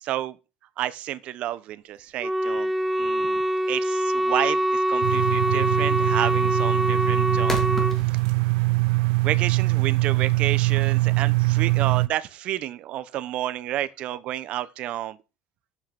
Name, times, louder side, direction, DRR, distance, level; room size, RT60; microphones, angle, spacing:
voice 1, 0.0-0.4 0.8-2.7 3.0-7.6 9.2-15.2, right 13 dB, 45° right, 0.8 m, -30 dB
sound 1, 1.9-8.8, left 2 dB, 15° left, 2.1 m, -38 dB
Wind instrument woodwind instrument, 2.2-8.0, right 1 dB, 5° right, 0.4 m, -24 dB
sound 2, 5.0-12.1, right 23 dB, 75° right, 0.4 m, -23 dB
7.7 x 5.9 x 5.9 m
cardioid pair, 150°, 3 cm